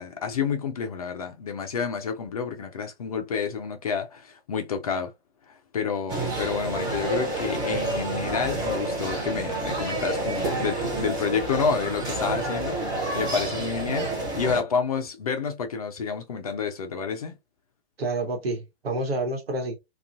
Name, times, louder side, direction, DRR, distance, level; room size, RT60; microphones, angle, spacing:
voice 1, 0.0-5.1 5.5-12.8 13.1-17.4, left 6 dB, 35° left, 0.4 m, -29 dB
sound 1, 6.1-14.6, right 2 dB, 15° right, 0.6 m, -29 dB
voice 2, 18.0-19.8, right 2 dB, 65° right, 1.1 m, -28 dB
2.4 x 2.3 x 2.3 m
figure-of-eight pair, 115°, 33 cm